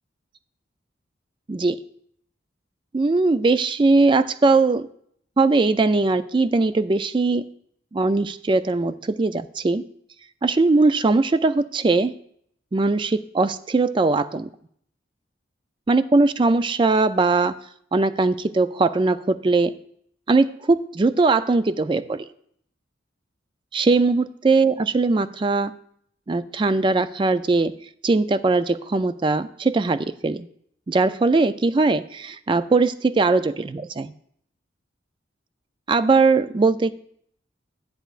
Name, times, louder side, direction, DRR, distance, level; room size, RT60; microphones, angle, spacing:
voice 1, 1.5-1.8 2.9-4.9 5.4-7.5 7.9-9.8 10.4-12.1 12.7-14.5 15.9-17.6 17.9-19.7 20.3-22.2 23.7-25.7 26.3-27.7 28.0-30.5 30.9-34.1 35.9-36.9, right 3 dB, 25° right, 13 dB, 0.3 m, -20 dB
11.5 x 10.0 x 2.4 m, 0.67 s
head